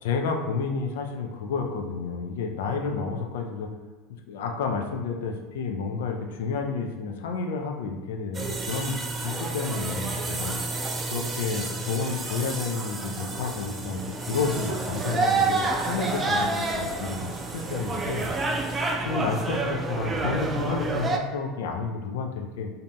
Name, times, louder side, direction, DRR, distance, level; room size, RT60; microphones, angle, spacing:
voice 1, 0.0-3.7 4.3-10.6 11.1-22.7, left 4 dB, 70° left, 3 dB, 0.4 m, -30 dB
sound 1, 8.3-21.2, right 3 dB, 25° right, 0.4 m, -29 dB
3.9 x 2.6 x 2.2 m, 1.3 s
figure-of-eight pair, 75°, 0 cm